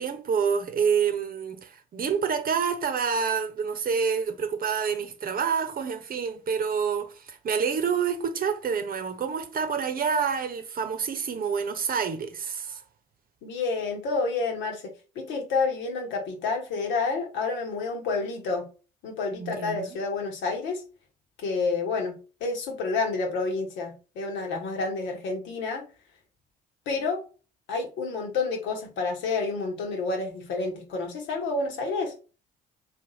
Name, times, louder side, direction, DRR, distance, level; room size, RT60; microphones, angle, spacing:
voice 1, 0.0-12.8 19.3-19.9, right 6 dB, 45° right, 0.9 m, -28 dB
voice 2, 13.4-18.7 19.0-20.8 21.4-25.8 26.9-27.2 27.7-32.1, left 4 dB, 65° left, 1.3 m, -29 dB
3.4 x 2.7 x 4.0 m
hypercardioid pair, 55°, 21 cm